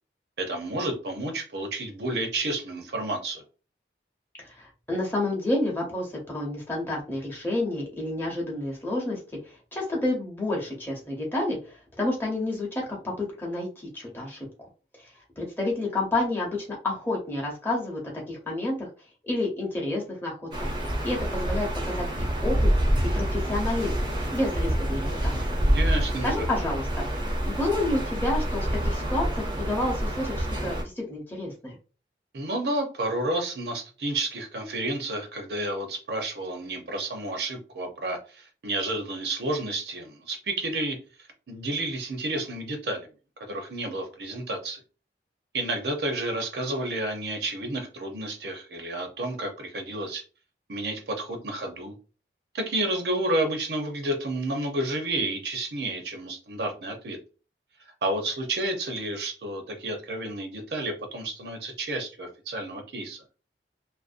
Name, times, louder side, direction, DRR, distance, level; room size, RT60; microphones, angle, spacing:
voice 1, 0.4-3.4 25.6-26.5 32.3-43.1 43.5-44.8 45.5-50.2 50.7-51.9 52.5-57.2 58.0-63.2, right 1 dB, 70° right, 4 dB, 0.6 m, -31 dB
voice 2, 4.4-9.2 9.7-14.5 15.0-18.9 19.2-20.7 21.0-22.7 23.1-23.9 24.3-25.6 26.2-31.7, left 2 dB, 10° left, -3 dB, 0.7 m, -30 dB
sound 1, 20.5-30.8, equal, 25° right, 0.5 m, -27 dB
2.5 x 2.0 x 2.4 m, 0.34 s
head